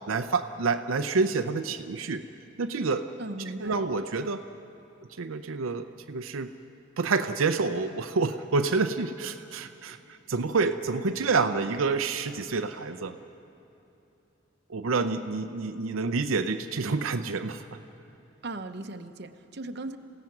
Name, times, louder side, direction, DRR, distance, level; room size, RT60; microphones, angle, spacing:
voice 1, 0.1-2.2 2.6-3.1 3.6-4.4 5.2-6.5 7.0-13.1 14.7-17.6, right 4 dB, 85° right, 7 dB, 0.6 m, -28 dB
voice 2, 3.2-3.7 18.4-20.0, right 2 dB, 55° right, 7 dB, 0.9 m, -37 dB
28.5 x 16.5 x 6.0 m, 2.9 s
head